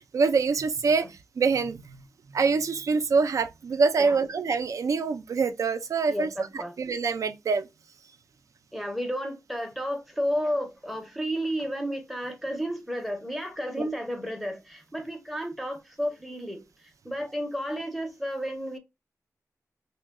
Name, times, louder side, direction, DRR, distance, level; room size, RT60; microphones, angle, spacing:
voice 1, 0.1-1.1 1.4-1.8 2.3-6.3 6.8-7.7 13.8-13.9, right 4 dB, 65° right, 0.4 m, -25 dB
voice 2, 6.1-6.7 8.7-16.6 17.0-18.8, equal, ahead, 0.6 m, -32 dB
3.0 x 2.2 x 3.4 m
wide cardioid pair, 145°, 6 cm